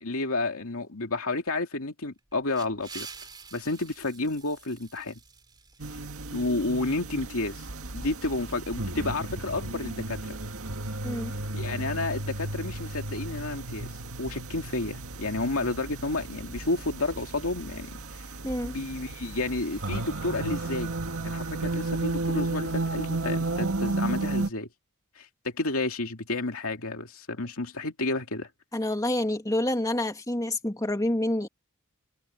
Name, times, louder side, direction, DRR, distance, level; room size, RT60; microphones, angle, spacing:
voice 1, 0.0-3.1 3.5-5.2 6.3-7.7 7.9-10.4 11.5-13.9 14.2-18.2 18.6-20.9 21.2-24.7 25.2-28.5, left 2 dB, 65° left, 2.7 m, -31 dB
sound 1, 2.2-6.7, right 5 dB, 20° right, 2.8 m, -47 dB
sound 2, 5.8-24.5, right 2 dB, 70° right, 2.0 m, -33 dB
voice 2, 18.4-18.8 28.7-31.5, left 1 dB, 15° left, 2.4 m, -28 dB
head